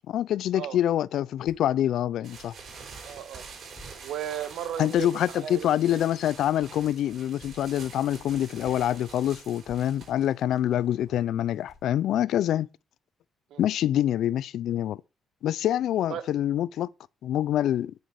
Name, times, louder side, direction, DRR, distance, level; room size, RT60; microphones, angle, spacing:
voice 1, 0.0-2.5 4.8-12.7 13.6-15.0 15.4-16.9 17.2-17.9, left 11 dB, 75° left, 0.4 m, -26 dB
sound 1, 1.4-1.8 2.6-2.7 3.7-4.4 5.0-5.2 7.4-7.8 8.5-8.6 9.6-10.1 10.6-10.7 11.6-12.2, left 1 dB, 20° left, 1.3 m, -53 dB
sound 2, 2.2-11.8, right 5 dB, 60° right, 4.7 m, -47 dB
voice 2, 3.0-3.5 4.0-6.0 13.5-13.7 16.1-16.2, right 10 dB, 80° right, 1.3 m, -35 dB
9.3 x 6.7 x 4.7 m
cardioid pair, 90°, 0 cm